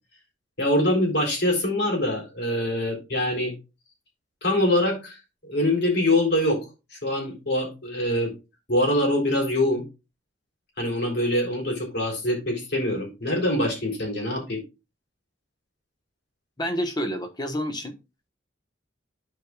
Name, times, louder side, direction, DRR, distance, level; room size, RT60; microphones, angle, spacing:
voice 1, 0.6-3.5 4.4-5.2 5.5-6.6 7.0-8.3 8.7-9.8 10.8-14.6, left 1 dB, 60° left, 0 dB, 3.7 m, -24 dB
voice 2, 16.6-18.0, equal, 25° left, 5 dB, 1.3 m, -28 dB
13.0 x 4.8 x 2.4 m, 0.27 s
head